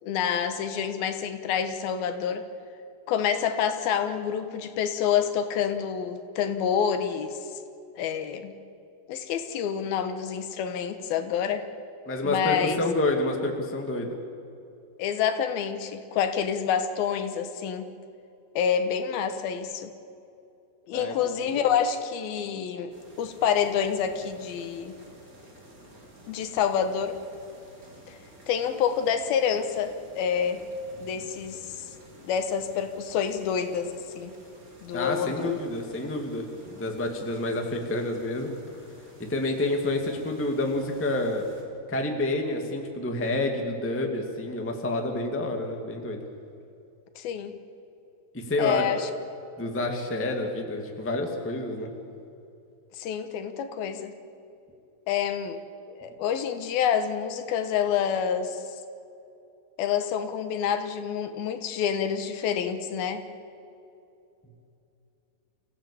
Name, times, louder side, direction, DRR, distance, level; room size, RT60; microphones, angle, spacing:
voice 1, 0.0-2.5 3.1-7.4 8.0-8.5 9.1-11.6 12.2-12.8 15.0-17.9 18.6-19.9 20.9-24.9 26.3-27.2 28.1-28.2 28.5-30.6 31.0-31.9 32.2-34.3 34.8-35.6 47.2-47.5 48.6-49.1 52.9-54.1 55.1-58.8 59.8-63.3, left 8 dB, 75° left, 9 dB, 2.9 m, -28 dB
voice 2, 12.0-14.1 20.9-21.1 21.5-21.7 34.9-36.5 36.8-38.5 39.3-41.4 41.9-46.2 48.3-48.8 49.6-51.9, left 2 dB, 5° left, 2 dB, 1.0 m, -28 dB
sound 1, 22.9-41.6, right 1 dB, 25° right, 3.4 m, -51 dB
27.5 x 16.5 x 8.6 m, 2.7 s
omnidirectional pair, 4.4 m